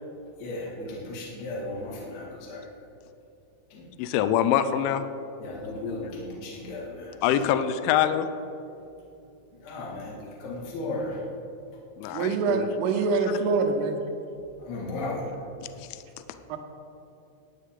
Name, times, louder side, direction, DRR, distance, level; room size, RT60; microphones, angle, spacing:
voice 1, 0.4-2.6 3.7-3.8 5.4-7.5 9.6-11.2 14.6-15.3, left 2 dB, 60° left, -4 dB, 4.0 m, -35 dB
voice 2, 4.0-5.0 7.2-8.3 12.0-12.7 15.9-16.0, left 10 dB, 85° left, 10 dB, 3.0 m, -24 dB
voice 3, 12.1-14.0 16.5-16.6, right 4 dB, 90° right, 4 dB, 3.4 m, -25 dB
19.0 x 9.8 x 3.7 m, 2.7 s
omnidirectional pair, 5.6 m